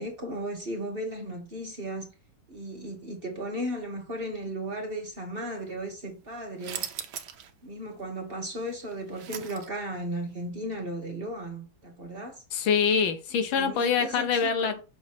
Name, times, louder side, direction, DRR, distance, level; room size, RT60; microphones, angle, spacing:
voice 1, 0.0-2.1 2.5-6.9 7.6-12.4 13.5-14.8, right 1 dB, 35° right, 1.3 m, -35 dB
sound 1, 6.6-7.5 7.9-8.0 8.7-10.0, right 9 dB, 65° right, 1.3 m, -38 dB
voice 2, 12.5-14.8, left 6 dB, 85° left, 1.7 m, -25 dB
6.4 x 3.0 x 5.7 m
omnidirectional pair, 2.1 m